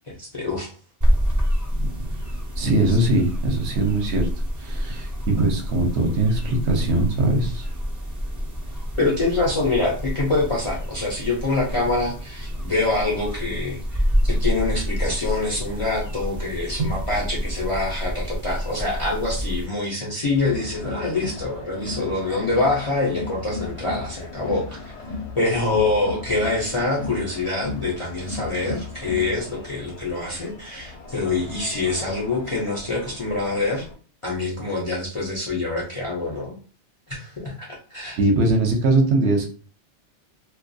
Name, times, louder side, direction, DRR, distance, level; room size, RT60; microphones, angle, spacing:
voice 1, 0.1-0.7 9.0-24.9 25.4-33.9 34.2-36.6 37.1-38.2, left 2 dB, 40° left, -4 dB, 0.4 m, -25 dB
sound 1, 1.0-19.7, equal, 30° right, 0.3 m, -27 dB
voice 2, 2.6-4.3 4.6-7.7 16.8-16.9 38.2-39.5, right 2 dB, 70° right, 2 dB, 0.8 m, -21 dB
Crowd, 20.4-33.9, left 3 dB, 75° left, 0.9 m, -36 dB
2.3 x 2.2 x 2.6 m, 0.38 s
omnidirectional pair, 1.2 m